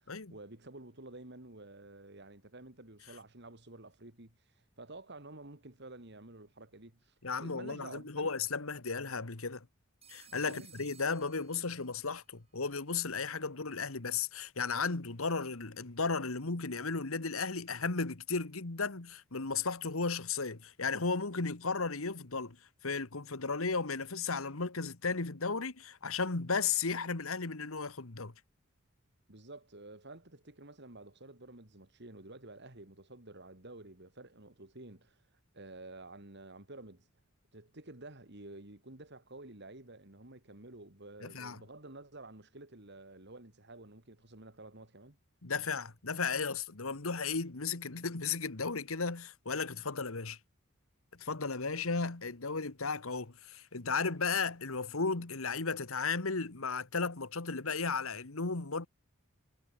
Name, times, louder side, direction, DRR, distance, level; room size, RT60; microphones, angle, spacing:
voice 1, 0.0-4.4 4.8-8.3 10.4-10.7 29.3-35.2 35.5-37.0 37.5-45.2, right 2 dB, 55° right, 2.9 m, -51 dB
voice 2, 7.2-9.7 10.1-22.6 22.8-28.3 41.2-41.6 45.4-50.4 51.2-58.9, left 4 dB, 80° left, 1.6 m, -35 dB
Telephone, 10.0-12.1, right 8 dB, 30° right, 6.3 m, -59 dB
head